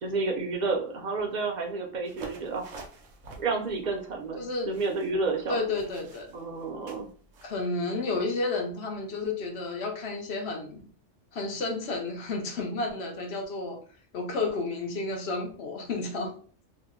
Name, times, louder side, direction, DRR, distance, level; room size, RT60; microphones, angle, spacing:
voice 1, 0.0-2.7 3.4-5.6 6.3-7.1, right 3 dB, 50° right, 1 dB, 0.6 m, -30 dB
sound 1, 2.1-7.5, right 3 dB, 90° right, 1.0 m, -47 dB
voice 2, 4.4-4.7 5.5-6.3 7.4-10.8 11.3-13.8 14.1-16.3, left 3 dB, 65° left, 2 dB, 1.0 m, -31 dB
2.8 x 2.1 x 3.5 m, 0.42 s
omnidirectional pair, 1.2 m